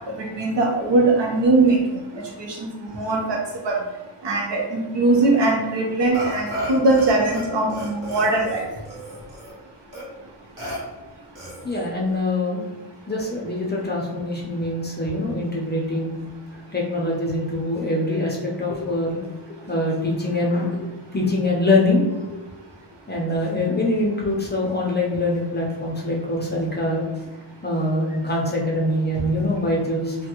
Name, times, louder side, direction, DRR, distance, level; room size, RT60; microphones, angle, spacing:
voice 1, 0.2-2.7 2.9-3.8 4.2-8.7, right 2 dB, 70° right, 0 dB, 0.8 m, -21 dB
Burping eructation, 6.1-7.4 7.7-9.5 9.9-10.0 10.6-10.8 11.3-11.9, equal, 45° right, 1.2 m, -33 dB
voice 2, 11.6-12.6 13.1-16.1 16.7-19.2 19.7-20.8 21.1-22.0 23.1-27.0 27.6-30.2, left 1 dB, 25° left, -3 dB, 0.5 m, -23 dB
3.3 x 2.2 x 2.9 m, 1.1 s
wide cardioid pair, 155°, 44 cm